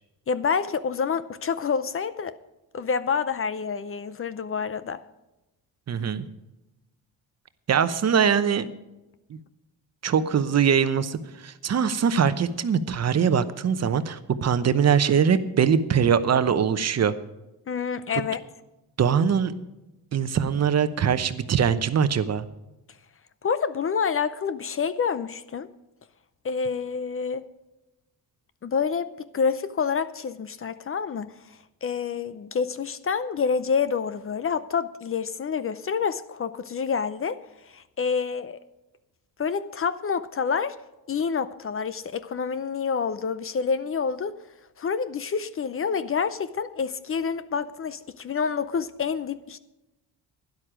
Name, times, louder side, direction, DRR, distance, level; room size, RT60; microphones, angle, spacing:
voice 1, 0.3-2.4 2.7-5.0 17.7-18.4 23.4-25.7 26.4-27.5 28.6-38.6 39.4-40.8 41.1-44.4 44.8-49.6, left 6 dB, 35° left, 0.6 m, -28 dB
voice 2, 5.9-6.3 7.7-8.7 9.3-9.4 10.0-17.1 19.0-19.5 20.1-22.4, right 7 dB, 45° right, 0.9 m, -22 dB
12.0 x 11.0 x 5.0 m
cardioid pair, 110°, 37 cm